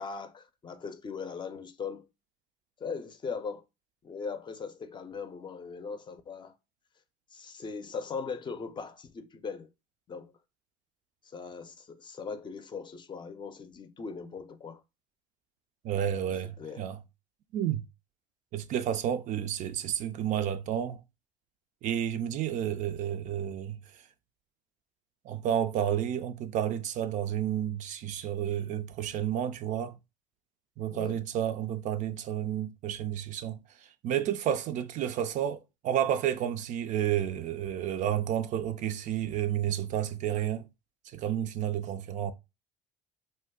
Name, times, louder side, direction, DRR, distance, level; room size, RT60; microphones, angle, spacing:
voice 1, 0.0-2.1 2.8-3.6 4.0-6.5 7.3-9.7 10.1-10.3 11.3-14.8 16.6-16.9 30.9-31.2, left 5 dB, 30° left, 0.5 m, -39 dB
voice 2, 15.8-17.0 17.5-17.8 18.5-21.0 21.8-24.0 25.2-30.0 30.8-40.7 41.1-42.3, right 10 dB, 55° right, 0.4 m, -31 dB
2.6 x 2.2 x 3.5 m
hypercardioid pair, 75°, 16 cm